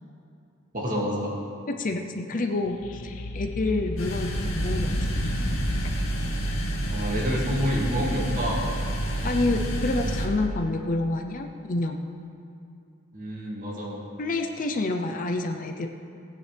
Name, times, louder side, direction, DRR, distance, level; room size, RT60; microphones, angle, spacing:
voice 1, 0.7-1.3 6.9-8.7 13.1-14.0, equal, 40° right, -4 dB, 2.2 m, -28 dB
voice 2, 1.7-5.2 9.2-12.0 14.2-15.9, left 2 dB, 40° left, 4 dB, 0.6 m, -28 dB
sound 1, 2.6-6.2, left 1 dB, 90° left, 0.8 m, -33 dB
sound 2, 4.0-10.3, right 1 dB, 75° left, 2.0 m, -28 dB
17.5 x 9.2 x 3.4 m, 2.5 s
head